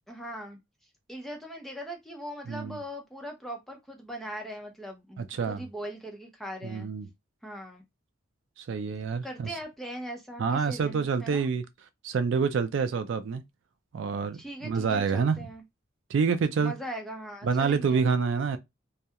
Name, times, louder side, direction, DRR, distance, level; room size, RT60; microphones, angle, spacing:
voice 1, 0.1-0.6 1.1-6.9 7.4-7.8 9.2-11.5 14.3-15.6 16.6-18.1, equal, ahead, 0.5 m, -40 dB
voice 2, 2.5-2.8 5.2-5.6 6.6-7.1 8.6-9.6 10.4-11.6 12.0-13.4 13.9-15.4 16.1-16.7 17.4-18.6, right 5 dB, 65° right, 0.3 m, -27 dB
2.3 x 2.1 x 2.8 m
head